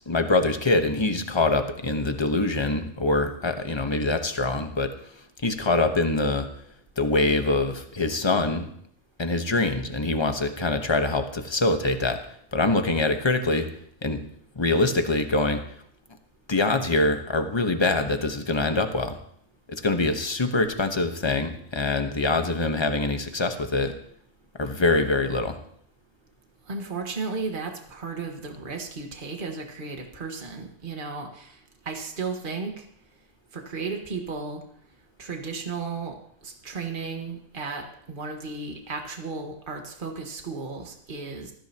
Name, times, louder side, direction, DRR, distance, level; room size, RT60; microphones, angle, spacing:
voice 1, 0.1-4.9 5.4-6.5 7.0-8.7 9.2-12.2 12.5-13.7 14.0-14.2 14.6-15.6 16.5-19.2 19.7-23.9 24.6-25.6, left 2 dB, 20° left, 6 dB, 1.1 m, -24 dB
voice 2, 26.7-31.6 31.8-32.8 33.5-34.6 35.2-36.2 36.4-41.5, right 4 dB, 40° right, 3 dB, 1.7 m, -34 dB
19.5 x 14.0 x 2.9 m, 0.67 s
omnidirectional pair, 1.4 m